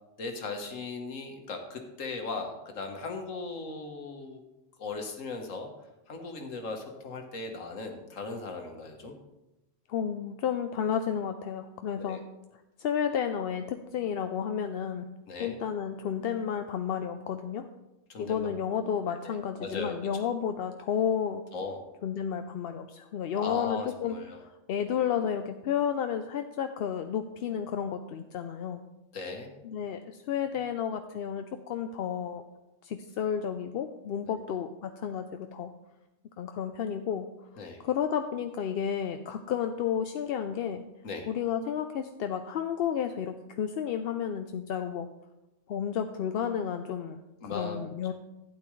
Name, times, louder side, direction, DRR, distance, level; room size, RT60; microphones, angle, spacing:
voice 1, 0.2-4.4 4.8-5.7 6.1-9.1 12.0-12.2 15.3-15.6 18.1-18.5 19.2-20.4 21.5-21.8 23.3-24.4 29.1-29.5 34.3-34.4 37.6-37.8 41.0-41.3 47.4-47.8, left 3 dB, 80° left, 3 dB, 1.6 m, -38 dB
voice 2, 9.9-12.2 12.8-15.1 15.4-17.7 18.2-21.4 22.0-28.8 29.6-32.4 32.8-35.7 36.4-37.3 37.8-40.8 41.3-45.1 45.7-48.1, left 8 dB, 65° left, 7 dB, 0.6 m, -32 dB
12.0 x 9.2 x 3.1 m, 0.96 s
omnidirectional pair, 1.3 m